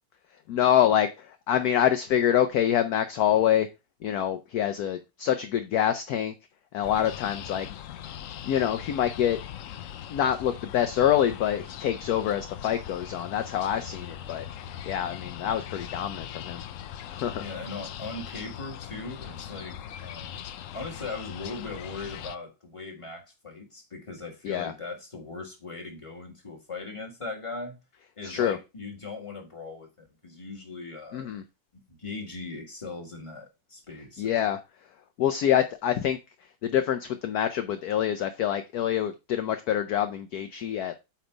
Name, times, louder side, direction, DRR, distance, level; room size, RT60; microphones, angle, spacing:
voice 1, 0.5-3.7 4.0-6.3 6.7-7.7 8.4-9.4 10.1-14.5 14.8-16.6 17.1-17.4 24.4-24.7 28.2-28.6 31.1-31.4 34.2-34.6 35.2-36.2 36.6-40.9, left 10 dB, 65° left, 1.1 m, -26 dB
sound 1, 6.8-22.4, left 10 dB, 90° left, 0.7 m, -40 dB
voice 2, 17.4-20.5 20.7-27.8 28.2-31.3 31.7-34.3, left 3 dB, 15° left, 1.9 m, -39 dB
8.8 x 3.3 x 5.0 m
omnidirectional pair, 2.0 m